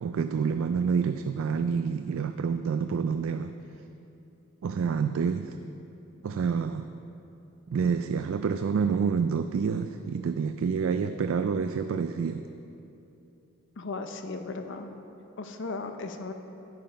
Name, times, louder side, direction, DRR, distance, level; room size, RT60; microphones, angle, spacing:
voice 1, 0.0-3.5 4.6-5.5 6.2-6.9 7.7-12.4, right 6 dB, 60° right, 9 dB, 0.3 m, -28 dB
voice 2, 13.8-15.0 15.4-16.3, left 3 dB, 55° left, 6 dB, 0.6 m, -36 dB
11.0 x 7.6 x 5.1 m, 2.9 s
head